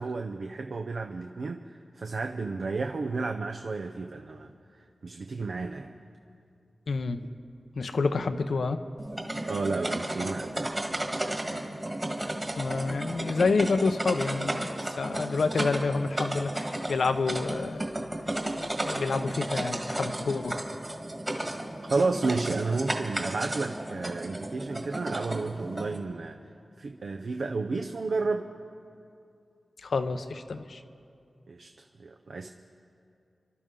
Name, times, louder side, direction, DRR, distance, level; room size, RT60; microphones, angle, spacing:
voice 1, 0.0-1.6 2.0-4.5 5.0-5.9 9.4-10.8 21.9-26.4 26.8-28.5 31.5-31.7 32.0-32.5, right 3 dB, 70° right, 4 dB, 0.6 m, -31 dB
voice 2, 6.9-7.3 7.8-8.8 12.6-17.8 18.8-20.6 29.8-30.8, left 4 dB, 80° left, 9 dB, 0.7 m, -28 dB
sound 1, 9.0-26.0, right 1 dB, 25° right, 1.7 m, -34 dB
29.5 x 12.5 x 3.8 m, 2.5 s
wide cardioid pair, 105°, 0 cm